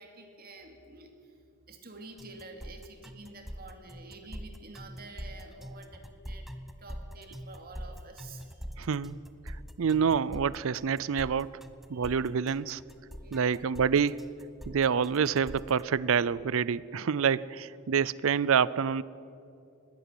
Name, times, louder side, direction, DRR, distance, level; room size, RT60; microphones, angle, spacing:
voice 1, 0.0-8.9 11.9-12.2 13.1-13.6, right 3 dB, 45° right, 5 dB, 2.5 m, -49 dB
sound 1, 2.2-15.8, equal, ahead, 0.9 m, -44 dB
voice 2, 8.8-9.2 9.5-11.5 11.9-12.8 13.3-14.2 14.7-19.0, right 6 dB, 65° right, 20 dB, 0.5 m, -27 dB
20.5 x 15.5 x 8.4 m, 2.6 s
head